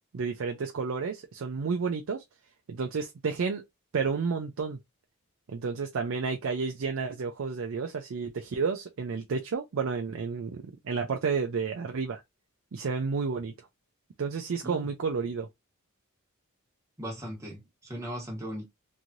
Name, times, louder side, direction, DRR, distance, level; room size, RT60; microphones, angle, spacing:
voice 1, 0.1-2.2 2.7-3.6 3.9-4.8 5.5-12.2 12.7-13.5 14.2-15.5, right 5 dB, 65° right, 0.4 m, -31 dB
voice 2, 17.0-18.6, equal, 15° right, 1.1 m, -38 dB
3.1 x 2.7 x 2.5 m
head